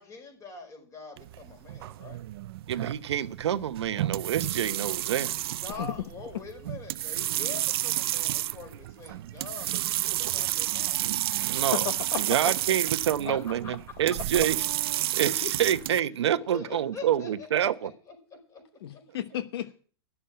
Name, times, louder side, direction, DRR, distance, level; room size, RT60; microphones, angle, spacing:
voice 1, 0.0-2.2 5.6-11.0 12.3-12.4 12.7-12.9 13.3-13.4 13.6-13.7 16.5-18.1 18.5-18.6 18.9-19.0, left 4 dB, 25° left, 5.0 m, -44 dB
sound 1, 1.2-16.0, right 15 dB, 65° right, 0.5 m, -31 dB
voice 2, 2.7-5.3 11.0-11.9 12.2-14.6 15.1-17.9, right 10 dB, 85° right, 0.9 m, -27 dB
voice 3, 11.7-12.4 15.4-15.5 18.8-19.7, left 10 dB, 65° left, 1.1 m, -33 dB
11.0 x 7.0 x 8.7 m
hypercardioid pair, 140°, 14 cm